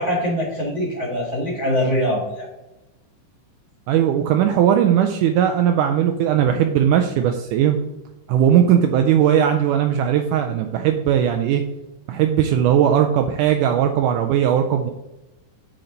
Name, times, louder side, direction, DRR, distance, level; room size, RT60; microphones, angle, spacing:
voice 1, 0.0-2.5, equal, 25° right, -4 dB, 1.9 m, -23 dB
voice 2, 3.9-7.8 8.3-11.6 12.1-14.9, right 9 dB, 80° right, 5 dB, 2.0 m, -18 dB
9.2 x 4.4 x 3.9 m, 0.99 s
omnidirectional pair, 3.8 m